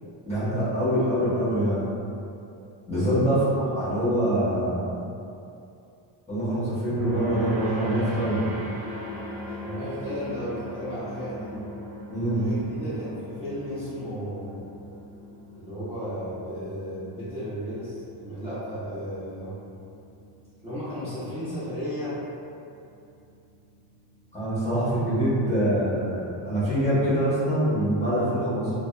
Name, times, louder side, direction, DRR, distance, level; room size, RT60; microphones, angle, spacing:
voice 1, 0.2-1.9 2.9-3.4 3.7-5.0 6.3-8.5 12.1-12.5 24.3-28.7, right 1 dB, 15° left, -13 dB, 1.0 m, -24 dB
voice 2, 0.9-1.2 3.0-3.4 9.4-11.6 12.3-14.5 15.5-19.6 20.6-22.2, equal, 15° right, -16 dB, 0.8 m, -34 dB
sound 1, 7.0-25.7, equal, 45° right, 0.7 m, -40 dB
2.6 x 2.3 x 2.3 m, 2.6 s
cardioid pair, 130°, 47 cm